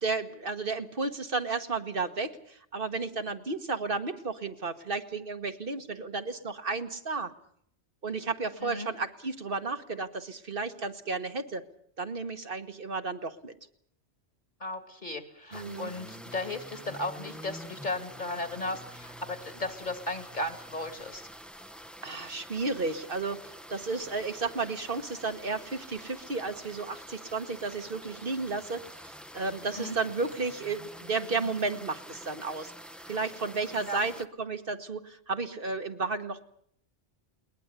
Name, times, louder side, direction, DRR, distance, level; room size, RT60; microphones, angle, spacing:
voice 1, 0.0-7.3 8.0-11.6 12.0-13.5 15.5-15.9 22.0-23.4 23.7-32.7 33.1-36.5, right 4 dB, 55° right, 7 dB, 1.5 m, -33 dB
voice 2, 14.6-21.3 29.8-30.0 33.9-34.0, left 2 dB, 45° left, 9 dB, 2.5 m, -35 dB
sound 1, 15.5-34.3, equal, ahead, 0.8 m, -47 dB
21.0 x 20.5 x 8.1 m, 0.66 s
omnidirectional pair, 1.1 m